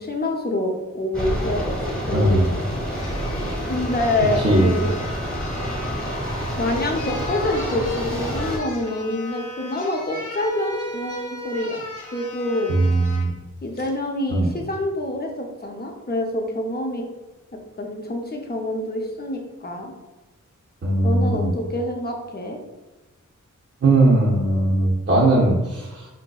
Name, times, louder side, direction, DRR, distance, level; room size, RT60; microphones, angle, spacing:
voice 1, 0.0-2.4 3.7-4.9 6.6-11.8 12.1-12.8 13.6-17.0 17.8-19.9 21.0-22.6, left 1 dB, 30° left, 2 dB, 0.6 m, -26 dB
sound 1, 1.1-8.6, equal, 5° left, 1.0 m, -28 dB
voice 2, 2.1-2.5 4.4-4.7 12.7-13.3 14.3-14.5 20.8-21.5 23.8-26.1, right 2 dB, 40° right, -5 dB, 0.6 m, -19 dB
sound 2, 2.4-2.5 2.9-13.3 13.8-13.9, left 3 dB, 70° left, 0.6 m, -36 dB
3.9 x 2.6 x 2.3 m, 1.1 s
wide cardioid pair, 60°, 32 cm